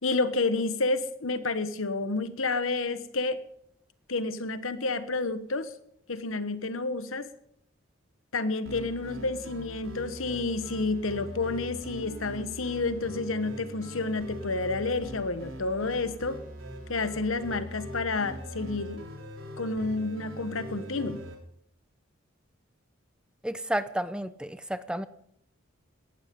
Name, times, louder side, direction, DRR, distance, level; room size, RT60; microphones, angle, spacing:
voice 1, 0.0-3.4 4.1-5.7 6.1-7.3 8.3-16.4 16.9-19.0 19.6-21.2, left 3 dB, 80° left, 12 dB, 1.3 m, -30 dB
sound 1, 8.6-21.4, equal, 75° right, 3.5 m, -41 dB
voice 2, 23.4-25.1, right 1 dB, 5° right, 13 dB, 0.6 m, -31 dB
18.5 x 13.0 x 5.4 m, 0.72 s
head